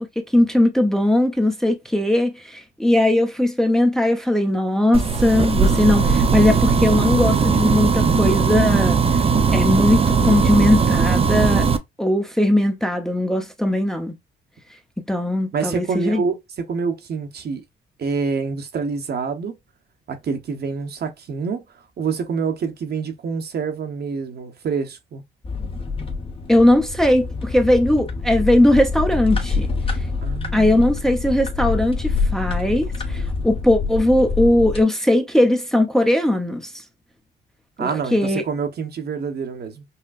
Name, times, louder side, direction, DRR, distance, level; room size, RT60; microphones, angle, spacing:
voice 1, 0.2-9.0 9.5-11.7 12.0-14.2 15.1-16.2 26.5-29.7 30.5-36.7 37.8-38.4, left 1 dB, ahead, 0.8 m, -19 dB
sound 1, 4.9-11.8, right 5 dB, 30° right, 0.6 m, -18 dB
voice 2, 15.5-17.6 18.0-19.5 20.1-25.2 30.2-30.8 37.8-39.8, right 5 dB, 55° right, 1.0 m, -27 dB
sound 2, 25.4-34.8, left 4 dB, 25° left, 1.1 m, -26 dB
5.6 x 2.2 x 2.5 m
cardioid pair, 90°, 20 cm